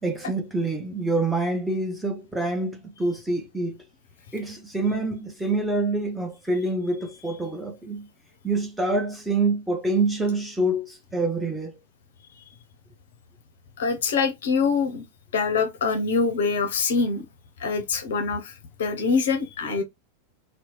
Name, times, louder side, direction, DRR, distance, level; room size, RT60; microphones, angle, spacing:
voice 1, 0.0-3.8 4.3-8.1 8.4-11.7, right 2 dB, 5° right, 0.7 m, -26 dB
voice 2, 13.8-15.0 15.3-17.2 17.6-18.5 18.8-19.8, left 5 dB, 60° left, 0.5 m, -24 dB
2.8 x 2.0 x 3.0 m
figure-of-eight pair, 90°, 0 cm